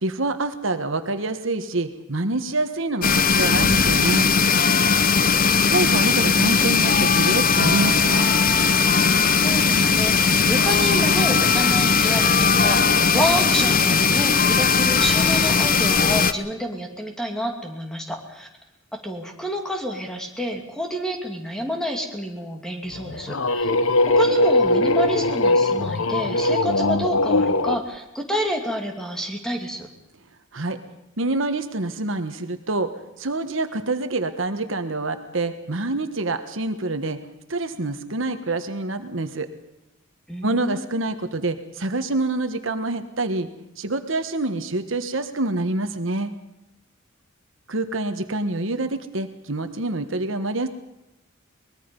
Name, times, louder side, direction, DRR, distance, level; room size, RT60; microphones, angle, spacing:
voice 1, 0.0-4.3 5.7-8.3 30.5-30.8 31.2-32.9 33.2-37.2 37.5-39.5 40.4-43.5 43.8-46.3 47.7-50.7, right 2 dB, 70° right, 8 dB, 1.4 m, -26 dB
sound 1, 3.0-16.3, left 5 dB, 45° left, 0.9 m, -18 dB
voice 2, 9.4-18.5 18.9-23.7 24.2-29.9 40.3-40.9, equal, 5° left, 2 dB, 2.7 m, -29 dB
sound 2, 22.9-27.8, left 2 dB, 80° left, 0.9 m, -20 dB
23.5 x 20.5 x 5.4 m, 0.91 s
head